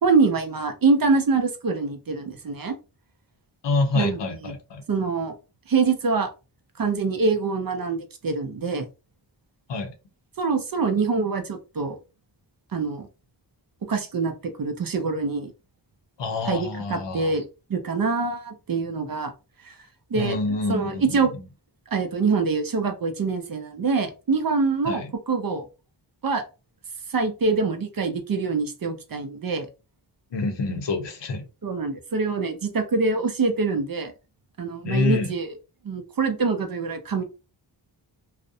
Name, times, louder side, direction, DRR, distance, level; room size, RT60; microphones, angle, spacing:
voice 1, 0.0-2.8 3.9-4.5 4.9-5.3 5.7-6.3 6.8-8.9 10.4-12.0 12.7-13.1 13.8-15.5 16.4-19.3 19.6-19.9 20.1-20.4 20.7-21.3 21.9-25.7 26.2-26.4 27.1-29.7 31.6-34.1 34.6-35.6 35.8-37.2, right 4 dB, 50° right, 0.5 m, -25 dB
voice 2, 3.6-4.8 9.7-9.9 16.2-17.3 20.1-21.0 24.8-25.1 30.3-31.5 34.8-35.3, left 3 dB, 70° left, 0.6 m, -26 dB
2.4 x 2.0 x 2.6 m
wide cardioid pair, 75°, 45 cm